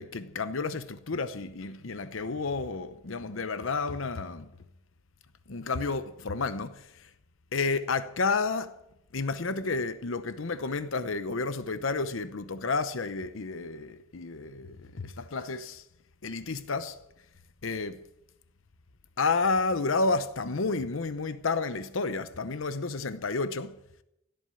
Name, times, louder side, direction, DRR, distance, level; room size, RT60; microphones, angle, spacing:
voice 1, 0.0-4.5 5.5-7.1 7.5-8.8 9.1-15.8 16.2-17.0 17.6-18.0 19.2-23.7, left 4 dB, 70° left, 0.8 m, -31 dB
17.0 x 8.0 x 8.9 m
head